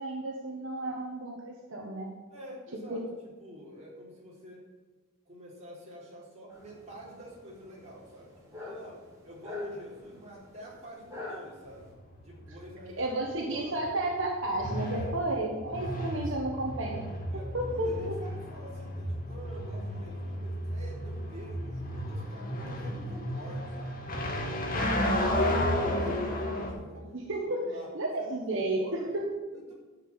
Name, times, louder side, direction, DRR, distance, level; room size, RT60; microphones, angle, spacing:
voice 1, 0.0-2.1 2.7-3.0 13.0-17.0 17.3-18.2 24.7-26.1 26.7-27.6 27.9-29.3, right 1 dB, 65° right, 0 dB, 1.4 m, -33 dB
voice 2, 2.3-3.1 3.4-4.7 5.3-11.9 12.2-13.7 14.8-15.1 15.9-16.3 17.3-24.0 24.6-24.9 25.2-25.6 25.9-27.1 27.5-27.9 28.2-29.2 29.5-29.7, equal, 35° right, -4 dB, 3.9 m, -47 dB
sound 1, 6.5-11.9, left 2 dB, 15° right, 3.4 m, -44 dB
sound 2, 11.7-26.7, left 1 dB, 45° left, 1.9 m, -33 dB
11.0 x 6.1 x 9.0 m, 1.3 s
head